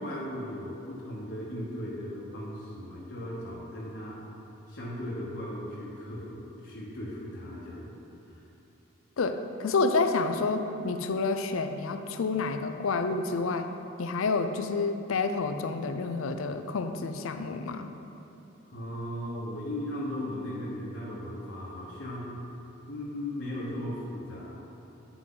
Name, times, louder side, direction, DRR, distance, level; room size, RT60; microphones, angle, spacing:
voice 1, 0.0-4.2 4.7-7.9 8.3-8.4 18.7-22.3 22.9-24.6, left 1 dB, 60° left, -6 dB, 1.2 m, -37 dB
voice 2, 9.2-13.7 14.0-17.9, left 3 dB, 85° left, 8 dB, 0.5 m, -29 dB
9.1 x 6.0 x 3.9 m, 2.9 s
head